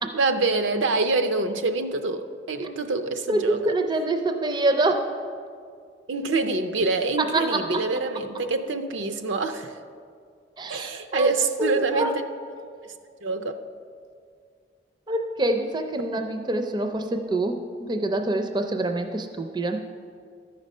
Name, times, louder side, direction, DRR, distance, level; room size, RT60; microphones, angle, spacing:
voice 1, 0.1-3.6 6.1-9.8 10.7-12.2 12.8-12.9 13.2-13.6 16.0-16.2, right 3 dB, 80° right, 8 dB, 0.5 m, -26 dB
voice 2, 3.3-5.1 7.3-7.6 10.6-11.3 11.6-12.1 15.1-19.8, right 2 dB, 25° right, 6 dB, 0.4 m, -25 dB
13.0 x 5.2 x 5.4 m, 2.2 s
head